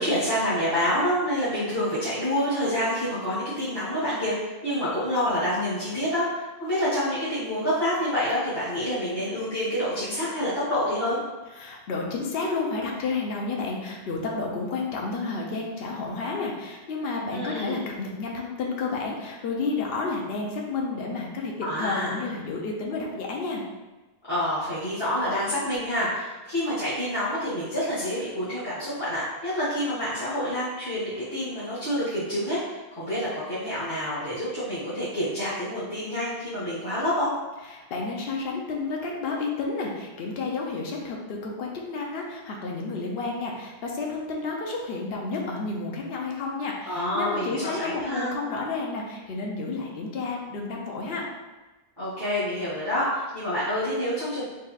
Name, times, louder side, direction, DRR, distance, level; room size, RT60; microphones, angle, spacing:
voice 1, 0.0-11.2 17.3-17.8 21.6-22.2 24.3-37.3 46.9-48.3 52.0-54.4, equal, 25° left, -12 dB, 1.2 m, -27 dB
voice 2, 11.6-21.5 21.8-23.6 37.7-51.3, left 3 dB, 70° left, -1 dB, 0.9 m, -31 dB
4.0 x 3.9 x 2.4 m, 1.2 s
omnidirectional pair, 1.1 m